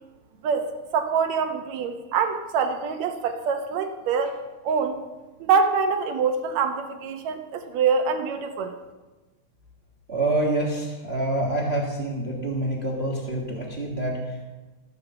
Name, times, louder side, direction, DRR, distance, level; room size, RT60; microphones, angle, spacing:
voice 1, 0.4-4.4 4.6-5.0 5.4-8.8, right 5 dB, 70° right, 6 dB, 2.1 m, -25 dB
voice 2, 10.1-14.6, right 2 dB, 35° right, -1 dB, 1.1 m, -27 dB
15.0 x 5.7 x 6.8 m, 1.2 s
omnidirectional pair, 3.4 m